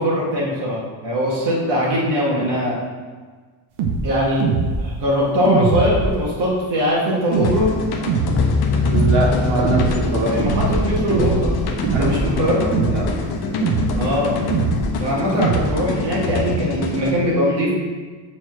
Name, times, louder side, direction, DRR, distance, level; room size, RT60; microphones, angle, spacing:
voice 1, 0.0-2.8 4.0-4.5 4.8-7.7 10.2-11.5 11.9-12.6 13.9-14.4 15.0-17.7, equal, 55° right, -6 dB, 1.9 m, -21 dB
sound 1, 3.8-4.0 4.4-4.8 5.5-6.2 7.3-7.7 8.1-8.4 8.9-9.3 9.6-10.0 10.4-10.8 11.1-11.5 11.8-12.3 12.7-13.1 13.6-14.0 14.5-14.9 15.4-15.7, right 4 dB, 75° right, 1.2 m, -21 dB
sound 2, 7.3-17.1, left 4 dB, 50° left, 1.1 m, -26 dB
sound 3, 8.4-12.8, left 4 dB, 25° left, 0.5 m, -25 dB
voice 2, 8.9-10.5 11.9-13.1, right 2 dB, 35° right, -7 dB, 2.5 m, -23 dB
7.2 x 4.3 x 6.1 m, 1.5 s
cardioid pair, 160°, 50 cm